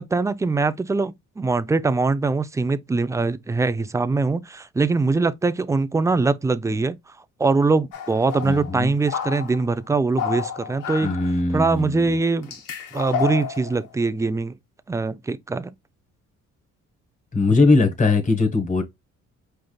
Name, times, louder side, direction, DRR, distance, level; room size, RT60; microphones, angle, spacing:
voice 1, 0.0-7.0 7.4-11.1 11.5-12.5 12.9-14.5 14.9-15.7, right 3 dB, 10° right, 0.4 m, -22 dB
sound 1, 7.9-9.7 10.1-11.4 12.0-12.1 12.4-13.9, left 7 dB, 85° left, 1.4 m, -30 dB
voice 2, 8.4-8.9 11.0-12.1 17.3-18.8, left 3 dB, 25° left, 1.4 m, -20 dB
4.9 x 3.3 x 2.3 m
cardioid pair, 90°, 30 cm